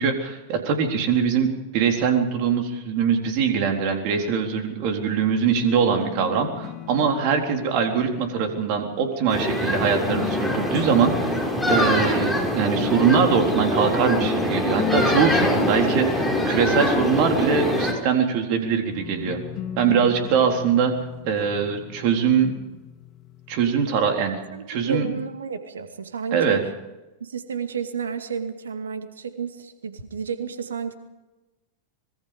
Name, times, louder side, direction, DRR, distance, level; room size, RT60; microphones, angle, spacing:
voice 1, 0.0-11.4 11.7-19.4 19.8-20.9 21.2-22.5 23.5-24.4 24.7-25.1 26.3-26.6, right 6 dB, 45° right, 4 dB, 4.0 m, -22 dB
sound 1, 5.9-9.2 9.8-12.0 13.8-13.9 14.2-17.9 18.9-23.9, left 11 dB, 35° left, 2.3 m, -36 dB
sound 2, 9.3-17.9, left 1 dB, 5° left, 5.8 m, -23 dB
voice 2, 24.5-26.7 27.2-30.9, right 6 dB, 70° right, 8 dB, 2.3 m, -31 dB
25.5 x 22.0 x 5.2 m, 1.1 s
figure-of-eight pair, 90°, 0 cm